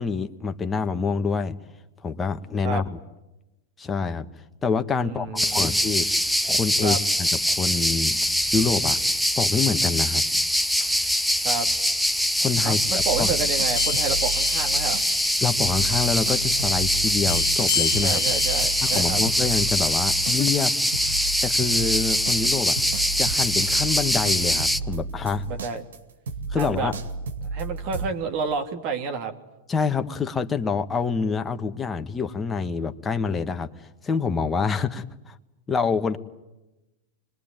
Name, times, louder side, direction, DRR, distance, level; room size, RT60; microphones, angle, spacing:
voice 1, 0.0-1.6 2.0-2.8 3.8-4.3 4.6-6.1 6.4-8.2 8.5-9.0 9.4-10.2 12.4-13.3 15.4-18.2 18.8-20.7 21.4-22.8 23.2-25.5 26.5-27.0 29.7-33.7 34.0-35.4 35.7-36.2, left 5 dB, 20° left, 7 dB, 1.7 m, -26 dB
voice 2, 5.0-5.8 6.8-7.0 11.4-11.7 12.6-15.0 18.0-19.2 25.5-25.8 26.5-26.9 27.5-29.3, right 5 dB, 50° right, 4 dB, 2.7 m, -30 dB
sound 1, 5.4-24.8, equal, ahead, 1.0 m, -23 dB
sound 2, 12.9-15.3 15.6-28.1, right 3 dB, 85° right, 2.5 m, -33 dB
sound 3, 13.8-15.4 15.7-15.9 17.3-19.0, left 9 dB, 80° left, 1.6 m, -32 dB
26.0 x 21.5 x 9.2 m, 0.98 s
hypercardioid pair, 110°, 0 cm